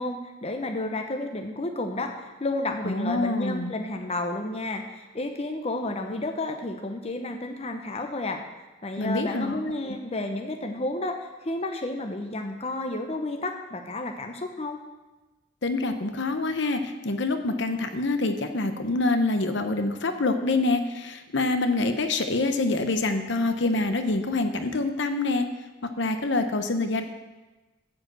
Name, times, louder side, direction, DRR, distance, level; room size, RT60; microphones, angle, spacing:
voice 1, 0.0-8.4 8.8-14.8, left 2 dB, 30° left, 4 dB, 0.8 m, -31 dB
voice 2, 2.8-3.8 9.0-9.6 9.9-10.0 15.6-25.5 26.0-27.0, left 2 dB, 60° left, 7 dB, 0.9 m, -26 dB
13.5 x 4.9 x 7.8 m, 1.2 s
head